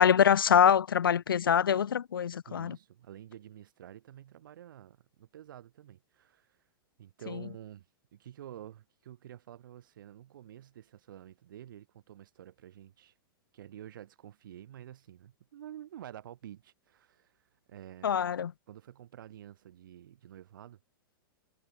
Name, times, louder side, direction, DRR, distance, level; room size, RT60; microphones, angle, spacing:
voice 1, 0.0-2.8 18.0-18.5, left 8 dB, 80° left, 0.7 m, -24 dB
voice 2, 2.5-6.6 7.0-7.9 8.1-13.1 13.5-18.2 18.7-20.8, right 11 dB, 65° right, 3.9 m, -49 dB
hypercardioid pair, 105°, 12 cm